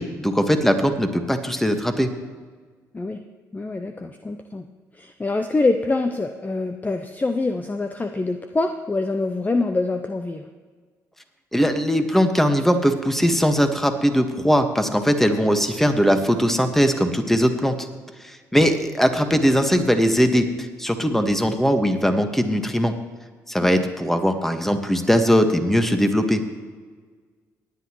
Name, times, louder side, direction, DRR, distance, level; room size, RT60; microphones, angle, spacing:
voice 1, 0.0-2.1 11.5-17.7 18.2-22.9 23.5-26.4, equal, 5° left, 7 dB, 1.5 m, -20 dB
voice 2, 3.5-4.6 5.0-10.5, left 3 dB, 20° left, 7 dB, 0.7 m, -25 dB
19.0 x 9.9 x 3.1 m, 1.6 s
hypercardioid pair, 50°, 8 cm